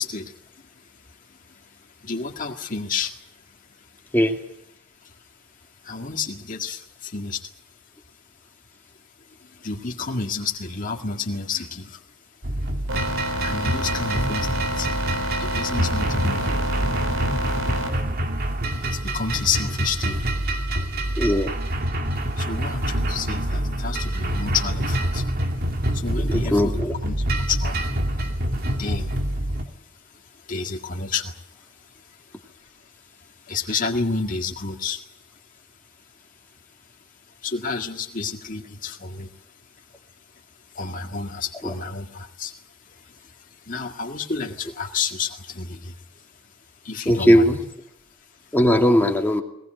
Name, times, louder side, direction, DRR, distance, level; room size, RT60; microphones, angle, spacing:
voice 1, 0.0-3.9 4.5-4.6 5.0-5.2 5.8-7.5 9.3-12.0 13.4-14.9 15.4-16.9 18.8-20.3 22.4-25.3 25.9-27.8 28.7-29.2 30.1-32.9 33.2-35.0 37.4-39.3 40.7-42.6 42.8-46.3 46.8-47.7, left 5 dB, 40° left, 2 dB, 2.0 m, -31 dB
sound 1, 12.4-29.6, right 1 dB, 50° right, 2.4 m, -26 dB
sound 2, 12.9-17.9, equal, 90° right, 5.0 m, -29 dB
voice 2, 21.2-21.5 26.3-26.9 41.6-41.7 47.1-47.6 48.5-49.4, equal, 10° left, 2 dB, 2.5 m, -18 dB
21.5 x 20.0 x 9.0 m, 0.78 s
head